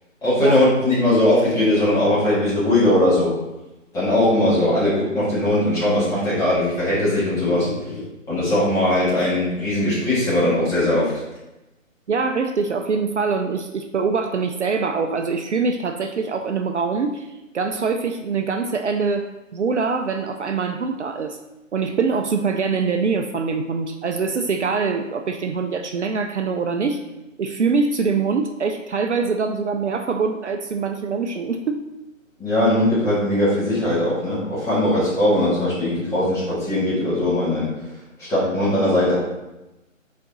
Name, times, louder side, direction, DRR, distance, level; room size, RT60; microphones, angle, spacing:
voice 1, 0.2-3.3 3.9-8.0 8.3-11.1 32.4-37.7 38.3-39.2, left 1 dB, 5° left, -10 dB, 1.7 m, -20 dB
voice 2, 12.1-19.3 19.5-21.4 21.7-27.0 27.4-31.8, right 5 dB, 60° right, 5 dB, 0.6 m, -24 dB
6.5 x 4.2 x 3.8 m, 0.98 s
figure-of-eight pair, 145°, 40 cm